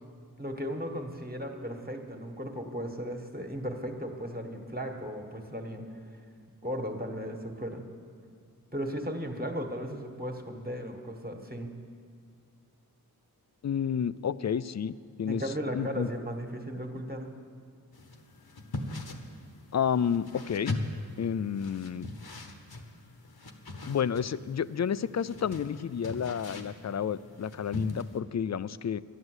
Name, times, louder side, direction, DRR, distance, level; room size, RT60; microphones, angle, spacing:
voice 1, 0.4-6.0 6.6-7.8 8.7-11.7 15.3-17.3, equal, 25° right, 3 dB, 1.7 m, -36 dB
voice 2, 13.6-14.9 15.2-15.4 15.7-16.1 19.7-20.8 21.2-22.0 23.9-29.0, left 8 dB, 45° left, 17 dB, 0.4 m, -30 dB
sound 1, 17.9-28.2, left 2 dB, 75° left, 1.2 m, -41 dB
11.0 x 11.0 x 8.0 m, 2.2 s
wide cardioid pair, 40°, 38 cm